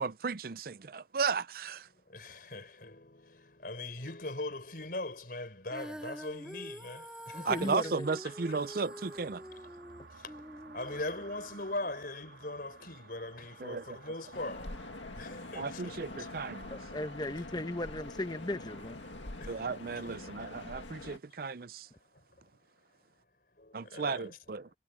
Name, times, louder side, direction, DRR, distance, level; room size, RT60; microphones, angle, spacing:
voice 1, 0.0-1.9 7.4-9.4 13.6-13.8 15.5-16.7 19.5-21.9 23.7-24.7, right 4 dB, 50° right, 0.5 m, -34 dB
voice 2, 1.9-7.7 8.2-8.7 10.1-10.4 10.7-16.3 19.4-20.1 20.7-20.8 22.1-22.2 23.5-24.4, left 2 dB, 50° left, 4.8 m, -41 dB
Female singing, 5.7-11.9, equal, 5° right, 2.1 m, -46 dB
voice 3, 7.3-8.1 16.7-19.0, left 1 dB, 20° left, 1.1 m, -36 dB
sound 1, 8.0-20.4, right 4 dB, 70° right, 3.0 m, -55 dB
sound 2, 14.3-21.2, left 2 dB, 85° left, 2.0 m, -45 dB
head